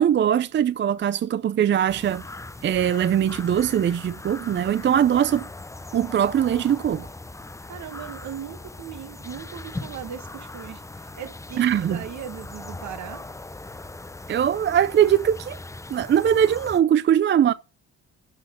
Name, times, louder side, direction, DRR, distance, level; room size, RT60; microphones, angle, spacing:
voice 1, 0.0-2.2 2.6-5.5 5.9-7.1 11.6-12.0 14.3-15.6 15.9-17.5, right 9 dB, 40° right, 0.4 m, -21 dB
sound 1, 1.9-16.8, left 2 dB, 10° left, 0.6 m, -39 dB
voice 2, 7.7-13.2, right 9 dB, 65° right, 1.6 m, -38 dB
11.5 x 4.2 x 5.7 m
cardioid pair, 90°, 30 cm